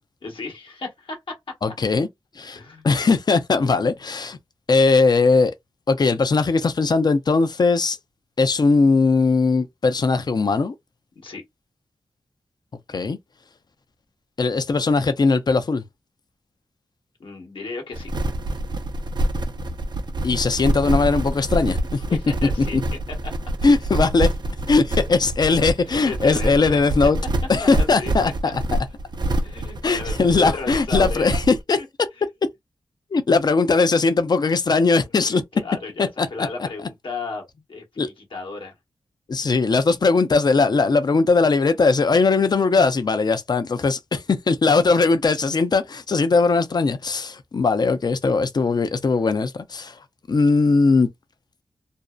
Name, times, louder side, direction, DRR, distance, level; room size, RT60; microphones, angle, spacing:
voice 1, 0.2-1.4 2.5-2.9 11.2-11.4 17.2-18.1 22.1-22.8 25.9-27.1 27.6-28.1 29.4-31.3 31.8-31.9 35.2-38.7, left 3 dB, 70° left, 1.0 m, -34 dB
voice 2, 1.6-2.1 2.4-4.4 4.7-5.5 5.9-8.0 8.4-10.7 12.9-13.2 14.4-15.8 20.2-22.0 22.7-22.8 23.6-24.3 24.7-27.2 27.5-28.5 29.8-31.8 33.1-35.4 36.0-36.5 38.0-38.1 39.3-50.0 50.3-51.1, left 4 dB, 50° left, 0.5 m, -19 dB
sound 1, 17.9-31.6, right 1 dB, 55° right, 0.5 m, -26 dB
2.5 x 2.0 x 2.3 m
cardioid pair, 50°, 9 cm